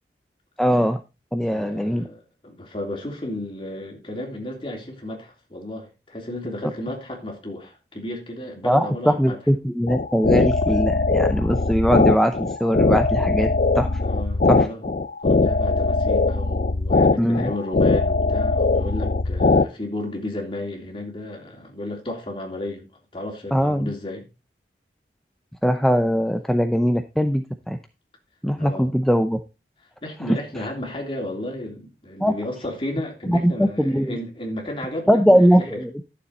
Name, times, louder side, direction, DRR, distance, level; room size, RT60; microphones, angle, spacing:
voice 1, 0.6-1.0 1.3-2.1 8.6-13.5 13.8-13.9 14.5-14.7 17.2-17.5 23.5-23.9 25.6-27.8 28.4-29.4 30.6-30.7 32.2-32.3 33.3-34.1 35.1-36.0, equal, ahead, 0.6 m, -20 dB
voice 2, 1.5-9.4 14.0-14.8 15.2-22.8 23.1-24.2 28.6-28.9 30.0-35.8, left 1 dB, 30° left, 3.2 m, -33 dB
sound 1, 9.9-19.7, left 3 dB, 45° left, 0.5 m, -20 dB
12.0 x 7.0 x 4.2 m
head